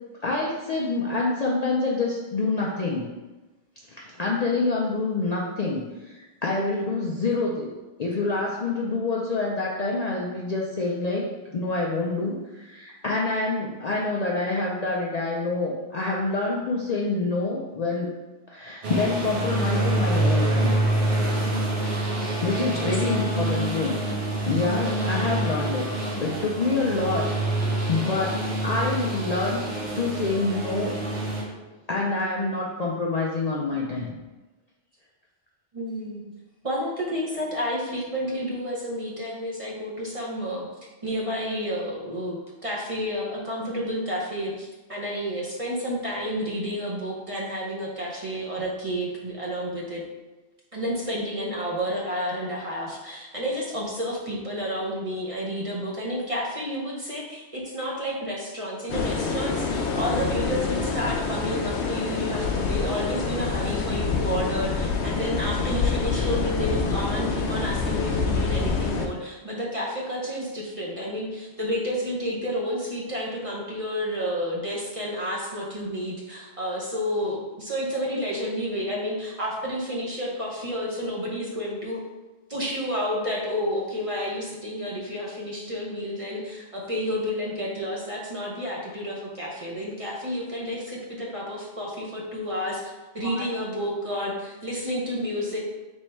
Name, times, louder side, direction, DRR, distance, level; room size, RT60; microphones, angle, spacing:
voice 1, 0.2-3.1 3.9-7.7 8.0-18.1 18.5-20.8 22.4-24.0 24.5-25.9 26.2-27.3 27.5-29.6 30.0-31.0 31.9-34.1 93.2-93.5, left 3 dB, 50° left, -3 dB, 0.5 m, -27 dB
sound 1, 18.8-31.4, right 1 dB, 85° right, 1.4 m, -26 dB
voice 2, 22.6-23.1 35.7-36.2 36.6-40.7 41.0-50.0 50.7-82.0 82.5-95.6, equal, 35° right, -4 dB, 0.7 m, -30 dB
sound 2, 58.9-69.1, left 4 dB, 75° left, 0.8 m, -26 dB
3.6 x 3.1 x 4.4 m, 1.1 s
omnidirectional pair, 1.1 m